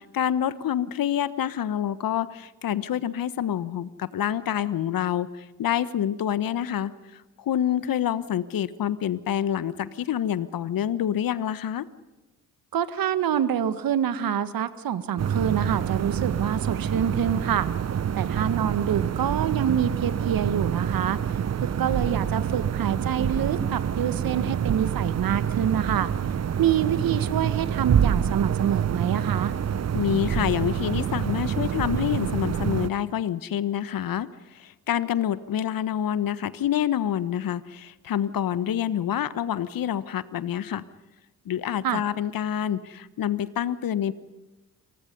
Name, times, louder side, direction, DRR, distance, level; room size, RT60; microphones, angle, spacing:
voice 1, 0.1-11.9 29.9-40.8 41.4-44.1, left 10 dB, 50° left, 15 dB, 1.4 m, -27 dB
voice 2, 12.7-17.7 18.2-26.1 26.6-29.5 41.8-42.0, right 9 dB, 55° right, 12 dB, 1.9 m, -26 dB
sound 1, 15.2-32.9, right 8 dB, 35° right, 1.1 m, -27 dB
29.5 x 28.0 x 5.5 m, 1.1 s
hypercardioid pair, 50°, 42 cm